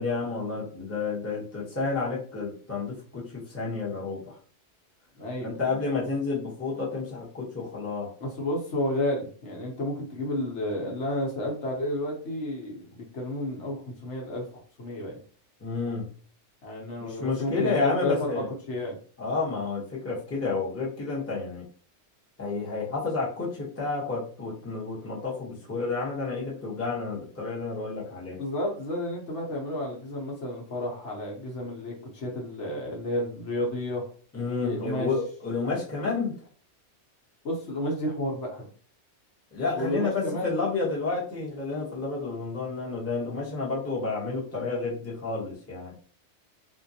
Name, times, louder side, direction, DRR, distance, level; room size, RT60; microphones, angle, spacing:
voice 1, 0.0-4.3 5.4-8.1 15.6-16.1 17.0-18.5 19.2-21.7 22.4-28.4 34.3-36.3 39.5-46.0, left 3 dB, 15° left, -4 dB, 0.9 m, -30 dB
voice 2, 5.1-5.6 8.2-15.2 16.6-19.0 28.4-34.1 34.6-35.1 37.4-38.7 39.7-40.5, left 1 dB, 70° left, -1 dB, 1.2 m, -31 dB
3.7 x 2.6 x 2.7 m, 0.44 s
omnidirectional pair, 1.3 m